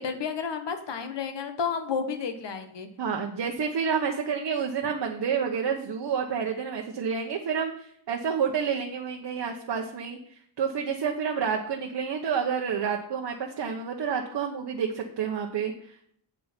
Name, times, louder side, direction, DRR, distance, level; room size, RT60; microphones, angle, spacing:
voice 1, 0.0-2.9, left 6 dB, 60° left, 7 dB, 1.3 m, -31 dB
voice 2, 3.0-10.2 10.6-15.7, right 6 dB, 55° right, 1 dB, 1.0 m, -29 dB
8.4 x 7.9 x 4.4 m, 0.66 s
wide cardioid pair, 150°, 48 cm